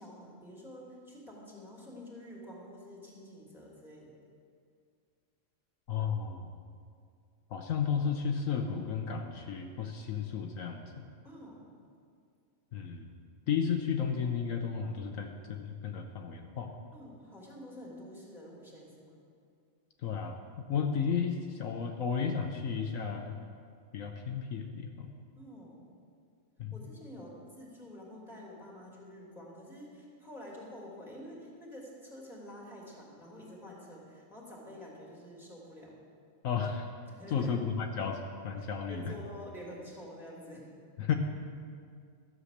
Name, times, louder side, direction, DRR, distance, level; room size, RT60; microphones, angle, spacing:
voice 1, 0.0-4.1 11.2-11.7 16.9-19.2 25.4-25.8 26.7-35.9 37.1-37.5 38.6-40.7, left 1 dB, ahead, -4 dB, 2.7 m, -48 dB
voice 2, 5.9-6.5 7.5-11.0 12.7-13.1 13.5-16.7 20.0-20.4 20.7-23.4 23.9-25.1 26.6-26.7 36.4-36.9 37.3-39.1 41.0-41.1, left 6 dB, 75° left, 3 dB, 1.2 m, -33 dB
13.0 x 7.9 x 6.5 m, 2.3 s
omnidirectional pair, 1.4 m